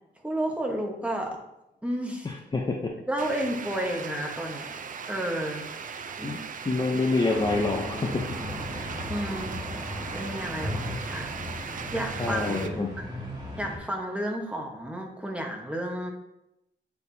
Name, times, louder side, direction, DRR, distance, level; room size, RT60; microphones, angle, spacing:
voice 1, 0.2-1.4 1.8-2.3 3.1-4.7 5.1-5.7 6.2-6.4 9.0-9.6 10.1-12.8 13.6-16.1, right 1 dB, 5° right, 0 dB, 1.1 m, -32 dB
voice 2, 2.2-2.9 6.2-6.4 6.7-8.2 8.8-8.9 12.2-12.9, left 3 dB, 20° left, 1 dB, 0.6 m, -27 dB
sound 1, 3.2-12.7, right 6 dB, 45° right, 0.4 m, -38 dB
sound 2, 7.3-13.8, equal, 20° right, 1.8 m, -36 dB
8.1 x 4.5 x 2.7 m, 0.86 s
cardioid pair, 110°, 19 cm